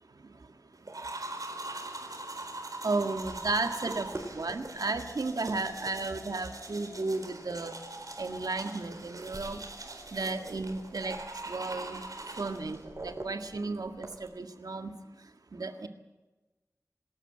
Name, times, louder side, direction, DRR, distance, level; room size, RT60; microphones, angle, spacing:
voice 1, 0.0-7.8 8.2-15.9, right 3 dB, 85° right, 6 dB, 1.8 m, -35 dB
sound 1, 0.9-12.8, right 2 dB, 70° right, 4.3 m, -42 dB
sound 2, 3.1-14.3, right 2 dB, 45° right, 5.9 m, -48 dB
27.0 x 13.5 x 8.9 m, 1.1 s
wide cardioid pair, 65°, 6 cm